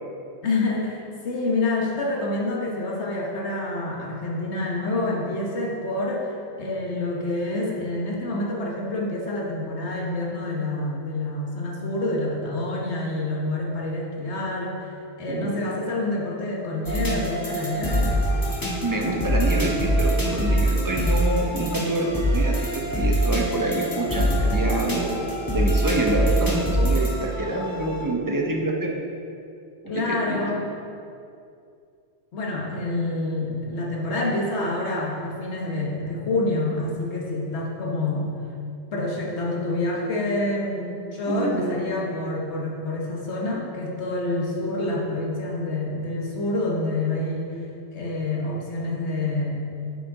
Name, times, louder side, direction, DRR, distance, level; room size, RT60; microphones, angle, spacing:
voice 1, 0.4-14.9 15.2-18.2 29.9-30.6 32.3-38.4 38.9-47.6 47.9-49.6, left 2 dB, 75° left, -2 dB, 1.4 m, -27 dB
voice 2, 15.3-15.7 18.8-25.2 25.5-28.9 29.9-30.0 30.3-30.5 41.3-42.0, right 2 dB, 20° right, 0 dB, 0.6 m, -27 dB
sound 1, 16.9-28.0, right 1 dB, 20° left, 1.3 m, -24 dB
8.5 x 5.0 x 3.7 m, 2.5 s
omnidirectional pair, 1.2 m